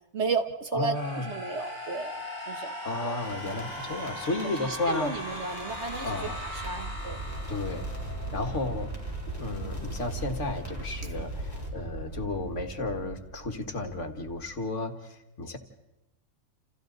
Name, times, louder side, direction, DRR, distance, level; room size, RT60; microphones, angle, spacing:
voice 1, 0.1-2.1 2.5-2.7 3.0-3.1 4.7-6.1 6.4-7.2 11.1-11.3, right 4 dB, 50° right, 7 dB, 1.4 m, -33 dB
voice 2, 0.7-1.3 2.8-5.1 6.0-6.5 7.5-7.9 8.3-8.9 9.3-15.6, left 2 dB, 55° left, 5 dB, 1.9 m, -33 dB
sound 1, 0.9-8.9, left 1 dB, 75° right, 4.7 m, -39 dB
sound 2, 3.2-11.7, equal, 10° left, 4.3 m, -48 dB
sound 3, 4.7-14.5, right 2 dB, 35° right, 2.6 m, -39 dB
29.5 x 28.5 x 4.0 m, 0.94 s
omnidirectional pair, 1.6 m